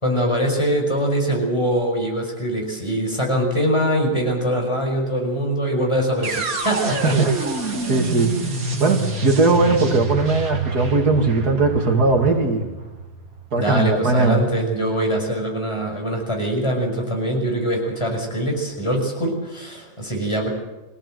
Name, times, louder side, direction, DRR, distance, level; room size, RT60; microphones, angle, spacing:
voice 1, 0.0-7.4 13.6-20.5, equal, 15° left, 1 dB, 5.7 m, -23 dB
sound 1, 6.2-14.2, right 3 dB, 60° right, 2.7 m, -28 dB
voice 2, 7.8-8.3 8.8-12.7 13.5-14.4, right 3 dB, 75° right, 3 dB, 2.9 m, -19 dB
24.0 x 17.0 x 7.9 m, 1.1 s
omnidirectional pair, 1.7 m